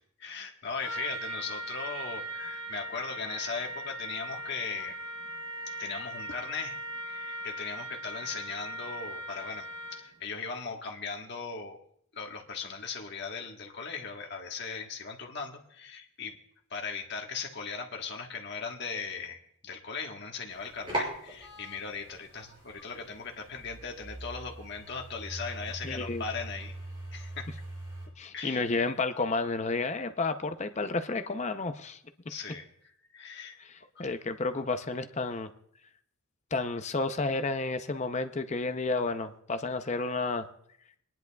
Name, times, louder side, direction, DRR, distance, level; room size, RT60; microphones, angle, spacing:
voice 1, 0.2-5.0 5.7-6.7 7.0-11.8 12.1-16.4 16.7-26.7 27.1-27.5 28.3-28.6 32.3-33.6 33.9-34.0, left 5 dB, 55° left, 2 dB, 1.4 m, -38 dB
Trumpet, 0.8-10.2, right 1 dB, 80° right, 1.4 m, -39 dB
sound 1, 20.5-28.1, right 1 dB, 25° right, 5.7 m, -41 dB
voice 2, 25.8-26.2 28.2-32.0 33.6-35.5 36.5-40.5, left 3 dB, 35° left, 9 dB, 0.6 m, -31 dB
28.5 x 10.5 x 2.3 m, 0.68 s
head